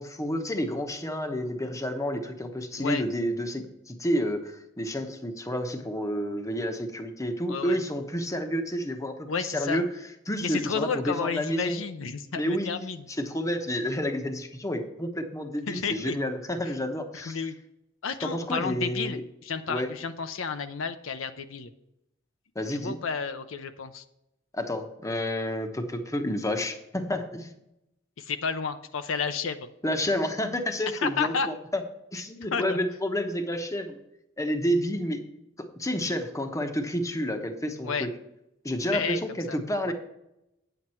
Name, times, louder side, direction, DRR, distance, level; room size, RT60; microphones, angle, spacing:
voice 1, 0.0-9.9 10.3-11.8 12.3-12.7 13.2-17.4 18.2-19.2 19.7-19.9 22.5-23.0 24.5-27.5 29.8-31.8 32.1-34.0 34.4-35.2 35.8-38.1 38.6-39.9, equal, 15° left, 5 dB, 1.0 m, -30 dB
voice 2, 9.3-9.8 10.4-13.1 15.7-16.2 17.1-17.6 18.0-21.7 22.7-24.0 28.2-29.7 31.0-31.5 32.5-32.8 37.8-38.1 38.9-39.2 39.5-39.6 39.9-40.0, left 5 dB, 80° left, 9 dB, 0.7 m, -31 dB
9.3 x 7.9 x 4.4 m, 0.85 s
head